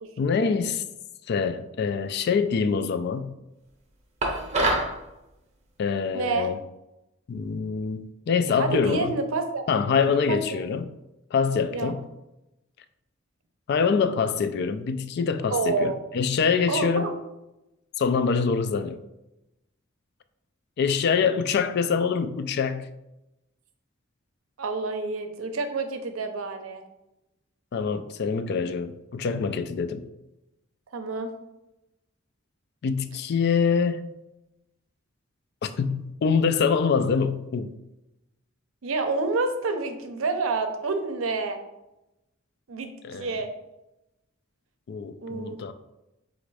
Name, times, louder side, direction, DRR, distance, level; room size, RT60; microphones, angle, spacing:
voice 1, 0.2-0.8 1.3-3.3 5.8-6.6 7.3-9.1 9.7-10.9 11.3-12.0 13.7-17.1 18.0-19.0 20.8-22.9 27.7-30.1 32.8-34.1 35.6-37.7 43.0-43.4 44.9-45.7, left 5 dB, 55° left, 0.3 m, -25 dB
sound 1, 4.2-4.9, right 2 dB, 35° right, 0.7 m, -24 dB
voice 2, 6.1-6.5 8.5-9.6 10.0-10.6 11.7-11.9 15.5-15.9 16.7-17.1 24.6-26.8 30.9-31.3 38.8-41.6 42.7-42.9 43.2-43.5 45.2-45.6, right 3 dB, 85° right, 0.6 m, -28 dB
4.0 x 2.5 x 4.7 m
head